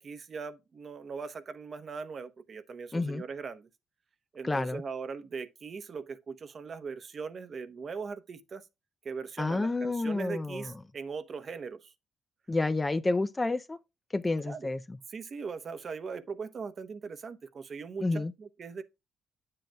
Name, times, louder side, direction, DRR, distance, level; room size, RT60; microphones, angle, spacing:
voice 1, 0.0-3.7 4.3-8.7 9.0-11.9 14.4-14.7 15.1-18.8, right 5 dB, 45° right, 0.9 m, -40 dB
voice 2, 2.9-3.2 4.4-4.8 9.4-10.7 12.5-13.8 14.1-15.0 18.0-18.3, left 2 dB, 20° left, 0.5 m, -29 dB
8.9 x 7.7 x 2.2 m
cardioid pair, 90°, 0 cm